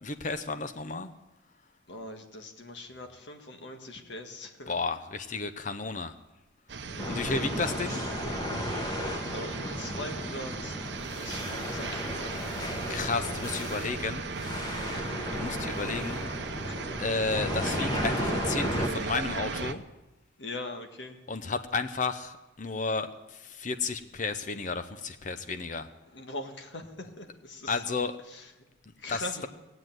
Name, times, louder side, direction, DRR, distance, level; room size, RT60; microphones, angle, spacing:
voice 1, 0.0-1.1 4.7-6.1 7.1-8.0 12.9-14.3 15.3-16.2 17.0-19.8 21.3-25.9 27.7-28.2 29.1-29.5, left 4 dB, 40° left, 10 dB, 0.6 m, -32 dB
voice 2, 1.9-4.7 6.9-7.5 8.7-10.8 11.2-12.8 16.7-17.0 20.4-21.2 26.1-27.8 28.3-28.5 29.0-29.5, left 1 dB, 60° left, 4 dB, 1.7 m, -42 dB
sound 1, 6.7-19.7, right 4 dB, 55° right, 0.8 m, -37 dB
sound 2, 7.0-18.9, equal, 20° left, 1.4 m, -34 dB
18.5 x 8.0 x 9.1 m, 1.1 s
head